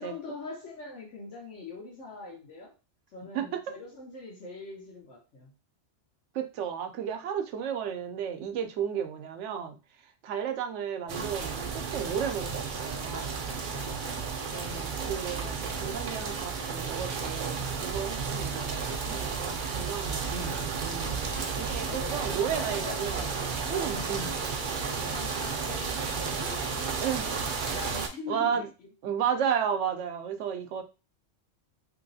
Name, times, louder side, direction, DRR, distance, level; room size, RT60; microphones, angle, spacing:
voice 1, 0.0-2.7 3.1-5.5 13.5-14.4 20.2-20.7 21.9-23.4 23.6-28.9, left 3 dB, 80° left, -3 dB, 1.2 m, -43 dB
voice 2, 3.3-3.7 6.3-9.8 10.2-13.4 14.5-21.2 21.6-23.2 23.7-24.3 27.0-27.3 28.3-28.7 29.0-30.8, right 8 dB, 85° right, 8 dB, 0.9 m, -33 dB
sound 1, 11.1-28.1, right 5 dB, 55° right, 0.6 m, -33 dB
3.0 x 3.0 x 2.6 m, 0.29 s
omnidirectional pair, 1.2 m